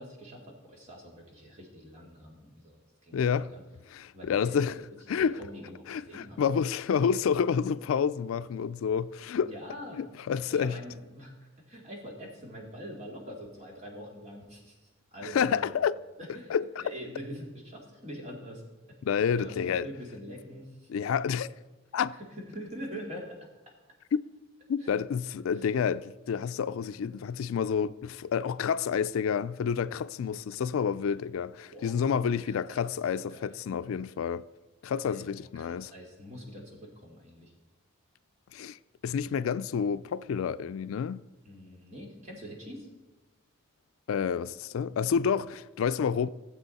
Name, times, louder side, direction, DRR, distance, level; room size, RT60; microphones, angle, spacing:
voice 1, 0.0-3.6 4.1-4.9 5.2-6.4 9.4-10.0 10.5-14.8 15.1-15.7 16.2-18.6 19.3-20.9 22.1-23.3 24.8-24.9 25.6-25.7 31.7-32.1 32.5-32.8 33.3-33.6 35.0-35.3 35.5-37.5 41.5-42.9, equal, 35° right, 2.2 m, -44 dB
voice 2, 3.1-3.5 3.9-4.7 5.1-5.4 5.9-9.5 10.0-10.7 15.2-15.9 16.5-16.6 19.0-19.9 20.9-21.5 21.9-22.2 24.7-34.4 34.8-35.9 38.5-38.8 39.0-41.2 44.1-46.3, left 7 dB, 85° left, 0.3 m, -29 dB
16.0 x 7.6 x 4.1 m
head